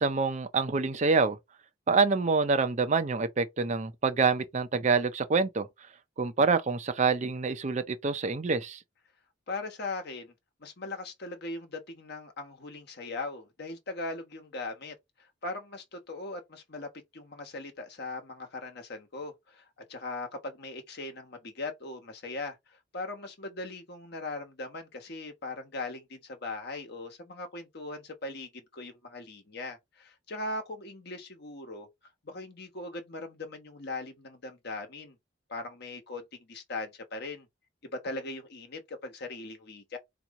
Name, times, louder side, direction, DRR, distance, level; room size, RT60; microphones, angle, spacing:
voice 1, 0.0-1.4 1.9-5.7 6.2-8.8, right 4 dB, 35° right, 0.5 m, -26 dB
voice 2, 9.5-10.3 10.6-31.9 32.2-35.2 35.5-37.5 37.8-40.0, left 2 dB, 55° left, 1.1 m, -39 dB
4.1 x 2.9 x 3.6 m
head